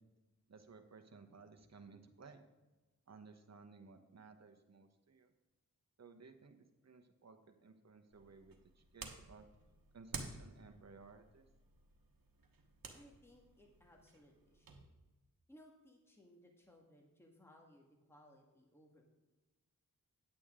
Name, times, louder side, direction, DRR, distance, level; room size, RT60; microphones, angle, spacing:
voice 1, 0.5-2.4 3.1-5.3 6.0-9.4 9.9-11.5, right 4 dB, 50° right, 6 dB, 1.1 m, -58 dB
sound 1, 8.1-14.8, right 4 dB, 85° right, 1.2 m, -53 dB
voice 2, 12.9-14.8 15.5-19.1, equal, 5° left, 0 dB, 1.6 m, -63 dB
9.9 x 8.5 x 3.7 m, 1.2 s
wide cardioid pair, 75°, 33 cm